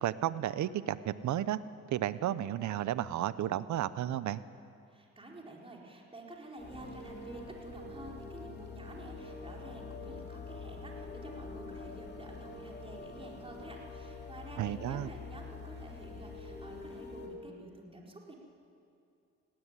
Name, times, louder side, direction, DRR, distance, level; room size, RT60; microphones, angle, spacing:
voice 1, 0.0-1.6 1.9-4.4 14.6-15.1, right 12 dB, 70° right, 16 dB, 0.8 m, -33 dB
voice 2, 4.9-18.3, right 2 dB, 20° right, -1 dB, 4.2 m, -49 dB
sound 1, 6.6-17.3, left 4 dB, 35° left, 3.2 m, -45 dB
18.0 x 16.0 x 9.9 m, 2.5 s
cardioid pair, 90°, 30 cm